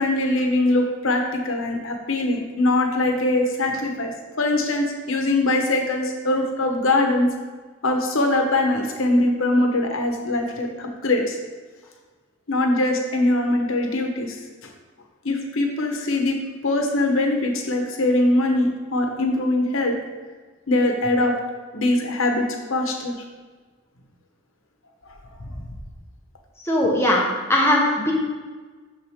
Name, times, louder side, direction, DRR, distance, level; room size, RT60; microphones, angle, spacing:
voice 1, 0.0-4.1 4.4-7.3 7.8-11.4 12.5-14.4 15.2-16.4 16.6-19.9 20.7-21.4 21.7-23.1 25.4-25.6, left 2 dB, 75° left, 3 dB, 1.1 m, -22 dB
voice 2, 26.6-27.2 27.5-28.1, left 1 dB, 10° left, -3 dB, 1.2 m, -19 dB
11.5 x 3.9 x 3.7 m, 1.4 s
head